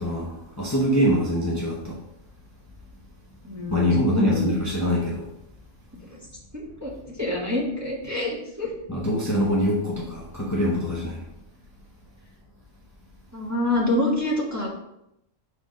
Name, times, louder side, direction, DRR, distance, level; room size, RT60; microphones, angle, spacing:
voice 1, 0.0-2.0 3.7-5.3 8.9-11.2, equal, 15° left, -5 dB, 1.0 m, -24 dB
voice 2, 3.4-4.5 6.1-6.2 6.5-8.7 13.3-14.7, left 1 dB, 15° right, -5 dB, 1.4 m, -26 dB
6.1 x 3.5 x 5.1 m, 0.83 s
omnidirectional pair, 1.3 m